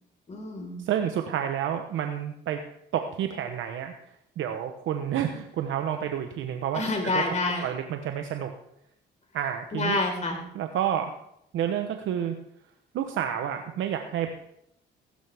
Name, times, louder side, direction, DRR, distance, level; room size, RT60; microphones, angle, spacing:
voice 1, 0.3-0.8 6.7-7.7 9.7-10.4, left 2 dB, 35° left, 1 dB, 4.4 m, -28 dB
voice 2, 0.8-2.6 2.9-3.9 4.4-6.8 7.1-7.2 7.6-8.5 9.3-10.0 10.5-11.1 11.5-12.3 12.9-14.3, right 9 dB, 80° right, 6 dB, 1.0 m, -29 dB
15.5 x 12.5 x 3.5 m, 0.76 s
cardioid pair, 90°, 20 cm